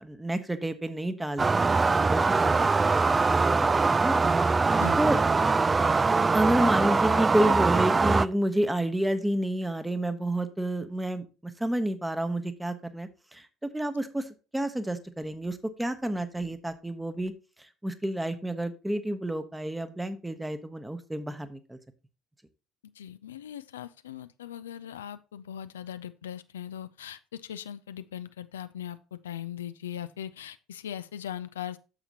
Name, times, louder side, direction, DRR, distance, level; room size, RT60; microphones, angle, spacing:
voice 1, 0.0-4.2 4.6-5.2 6.3-17.3 17.6-21.8, right 1 dB, 10° right, 1.0 m, -30 dB
sound 1, 1.4-8.3, right 4 dB, 25° right, 0.3 m, -23 dB
voice 2, 23.0-31.8, left 10 dB, 75° left, 0.3 m, -39 dB
9.0 x 7.1 x 2.9 m
figure-of-eight pair, 55°, 0 cm